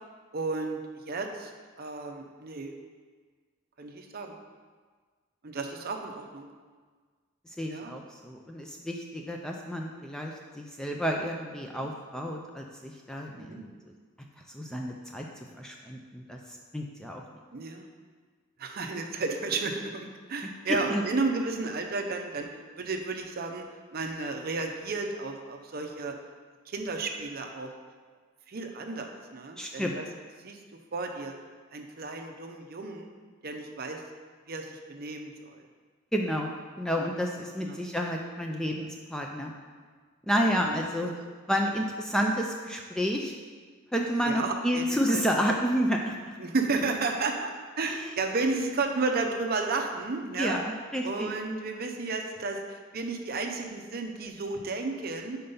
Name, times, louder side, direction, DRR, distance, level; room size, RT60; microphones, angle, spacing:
voice 1, 0.3-1.5 1.8-2.7 3.8-4.4 5.4-6.5 7.7-7.9 11.7-11.9 13.4-13.6 17.5-17.9 18.6-22.5 22.8-23.6 23.9-26.1 26.7-27.7 28.5-30.0 30.4-30.6 30.9-31.3 31.7-33.1 33.4-34.0 34.5-35.6 37.6-37.8 39.3-39.5 40.6-40.8 44.3-45.2 46.4-47.5 47.8-50.6 51.0-55.4, right 3 dB, 45° right, 4 dB, 0.6 m, -32 dB
voice 2, 7.6-13.7 14.5-15.3 15.6-16.4 16.7-17.2 20.7-21.0 29.6-30.0 36.1-36.5 36.8-39.5 40.3-41.1 41.5-43.3 43.9-46.2 47.8-48.1 50.4-51.3, equal, 5° left, 0 dB, 0.3 m, -30 dB
5.3 x 4.4 x 5.4 m, 1.5 s
head